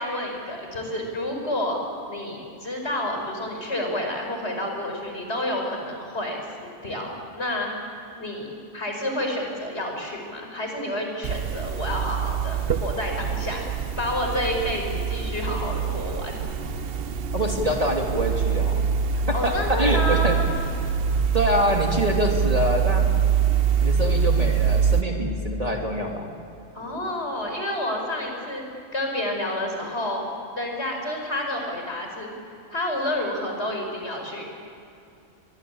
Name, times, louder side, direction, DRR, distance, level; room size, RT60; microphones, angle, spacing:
voice 1, 0.0-1.8 2.1-13.7 14.0-16.4 19.1-20.5 26.7-28.6 28.9-30.2 30.6-32.3 32.7-34.4, left 1 dB, 60° left, 2 dB, 5.6 m, -29 dB
sound 1, 11.2-25.0, right 7 dB, 55° right, 0.9 m, -24 dB
voice 2, 17.3-18.8 19.3-20.4 21.3-23.0 23.8-26.3, equal, 30° right, 1 dB, 2.9 m, -25 dB
25.0 x 22.0 x 8.8 m, 2.6 s
omnidirectional pair, 1.3 m